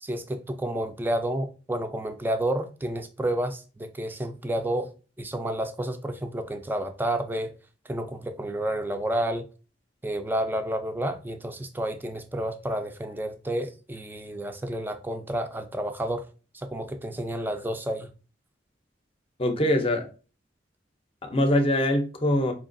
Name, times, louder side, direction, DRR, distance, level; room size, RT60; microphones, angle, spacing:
voice 1, 0.0-4.9 5.2-7.5 7.9-9.4 10.0-16.2 16.5-18.1, right 1 dB, 10° right, 0.4 m, -30 dB
voice 2, 19.4-20.1 21.2-22.5, left 1 dB, 30° left, 0.6 m, -23 dB
4.6 x 2.8 x 2.5 m
head